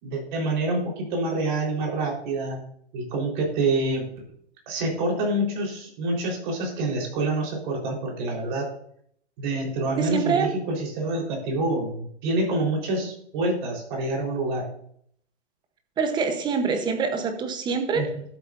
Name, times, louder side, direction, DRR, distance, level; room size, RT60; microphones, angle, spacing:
voice 1, 0.0-2.6 2.9-4.0 4.7-8.7 9.4-14.7 17.9-18.2, right 2 dB, 40° right, -1 dB, 3.9 m, -27 dB
voice 2, 10.0-10.5 16.0-18.1, right 5 dB, 10° right, 7 dB, 0.8 m, -25 dB
12.5 x 7.8 x 2.5 m, 0.67 s
hypercardioid pair, 140°, 36 cm